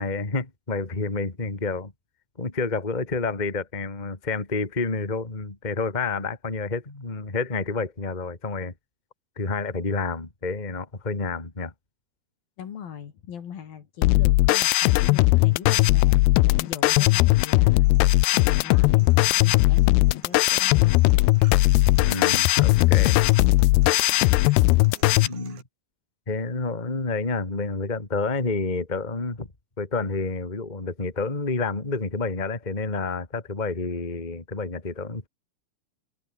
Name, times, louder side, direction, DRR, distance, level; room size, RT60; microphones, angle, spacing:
voice 1, 0.0-1.9 2.4-8.7 9.4-11.7 22.0-23.2 25.0-25.6 26.3-29.5 29.8-35.3, left 3 dB, 10° left, 2.4 m, -29 dB
voice 2, 12.6-17.9 18.3-21.0, left 8 dB, 60° left, 4.0 m, -40 dB
sound 1, 14.0-25.3, left 21 dB, 80° left, 2.4 m, -19 dB
sound 2, 17.6-25.6, right 9 dB, 70° right, 4.8 m, -49 dB
omnidirectional pair, 5.1 m